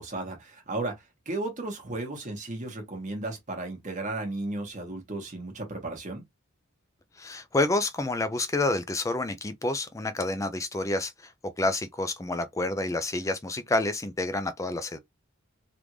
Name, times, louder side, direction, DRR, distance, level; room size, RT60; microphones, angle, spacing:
voice 1, 0.0-6.2, right 2 dB, 35° right, 1.2 m, -34 dB
voice 2, 7.2-15.0, left 2 dB, 15° left, 0.4 m, -29 dB
3.5 x 2.5 x 3.0 m
head